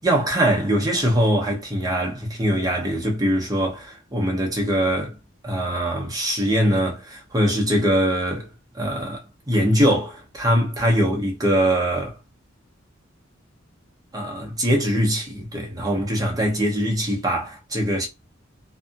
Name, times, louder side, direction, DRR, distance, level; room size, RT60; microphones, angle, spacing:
voice 1, 0.0-5.1 5.4-8.5 8.7-12.2 14.1-18.1, equal, 20° right, 0.8 m, -22 dB
2.6 x 2.5 x 2.2 m
head